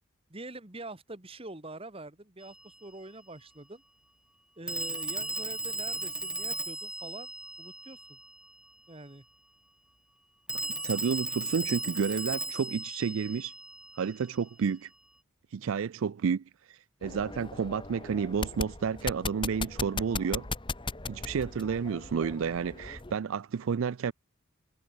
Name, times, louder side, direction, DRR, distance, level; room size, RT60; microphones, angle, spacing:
voice 1, 0.3-3.8 4.6-7.3 7.6-8.2 8.9-9.2, right 2 dB, 25° right, 1.7 m, -45 dB
Telephone, 2.4-2.5 4.7-8.4 10.5-14.2, right 2 dB, 5° right, 0.8 m, -36 dB
voice 2, 10.8-13.5 14.0-14.9 15.5-20.5 21.1-24.1, right 6 dB, 75° right, 0.4 m, -31 dB
sound 1, 17.0-23.2, left 3 dB, 25° left, 1.4 m, -38 dB
head